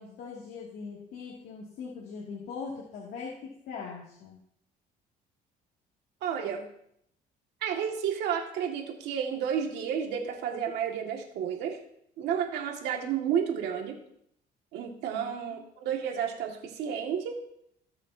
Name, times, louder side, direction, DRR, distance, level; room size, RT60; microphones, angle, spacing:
voice 1, 0.0-4.4 15.1-15.6, left 5 dB, 75° left, -4 dB, 2.5 m, -41 dB
voice 2, 6.2-6.7 7.6-11.8 12.2-14.0 14.7-17.4, right 8 dB, 80° right, 1 dB, 2.1 m, -31 dB
20.0 x 6.9 x 2.8 m, 0.72 s
cardioid pair, 110°, 17 cm